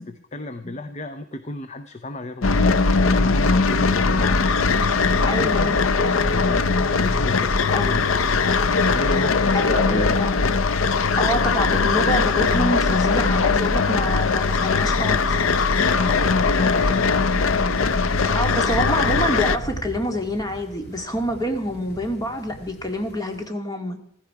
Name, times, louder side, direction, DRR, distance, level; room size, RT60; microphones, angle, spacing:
voice 1, 0.0-4.9 5.2-5.8 6.2-8.0 8.9-10.5 11.2-11.3 15.9-17.8 18.1-18.6, left 2 dB, 35° left, 9 dB, 0.7 m, -34 dB
sound 1, 2.4-19.6, left 4 dB, 85° left, 0.7 m, -20 dB
voice 2, 5.2-5.8 7.7-8.1 9.5-10.3 11.2-15.4 18.3-24.0, equal, 20° left, 4 dB, 2.0 m, -26 dB
sound 2, 6.0-23.5, equal, 50° left, 2.2 m, -44 dB
15.5 x 15.0 x 4.7 m, 0.63 s
head